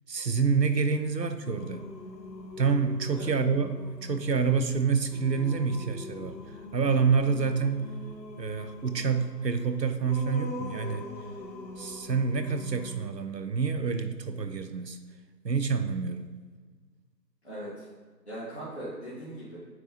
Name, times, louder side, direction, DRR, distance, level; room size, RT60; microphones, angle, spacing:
voice 1, 0.1-1.9 2.6-7.9 8.4-11.1 11.8-15.0 15.4-16.3, right 5 dB, 80° right, 9 dB, 0.8 m, -27 dB
Singing, 1.4-13.1, left 2 dB, 90° left, 0.9 m, -43 dB
voice 2, 17.4-17.9 18.3-19.6, right 1 dB, 40° left, -12 dB, 1.9 m, -39 dB
9.0 x 3.1 x 4.2 m, 1.5 s
figure-of-eight pair, 175°, 50 cm